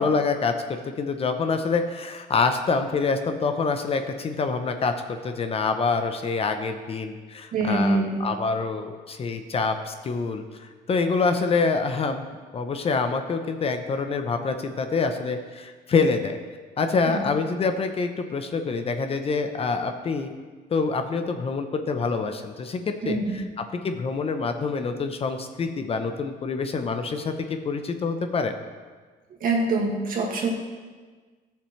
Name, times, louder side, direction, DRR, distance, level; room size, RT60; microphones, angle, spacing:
voice 1, 0.0-12.2 12.5-16.4 16.8-20.3 20.7-28.6, left 4 dB, 35° left, 7 dB, 0.7 m, -26 dB
voice 2, 7.5-8.2 17.1-17.3 23.0-23.4 29.4-30.5, right 2 dB, 55° right, 0 dB, 1.9 m, -24 dB
13.5 x 6.8 x 3.2 m, 1.4 s
cardioid pair, 110°, 17 cm